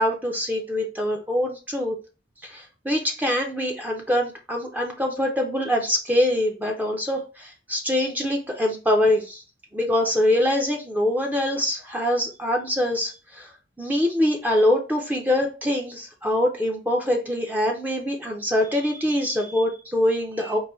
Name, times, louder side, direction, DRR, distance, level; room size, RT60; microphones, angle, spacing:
voice 1, 0.0-2.0 2.4-9.4 9.7-13.5 13.8-20.6, left 1 dB, 10° right, 1 dB, 0.5 m, -24 dB
4.6 x 2.6 x 3.0 m, 0.32 s
head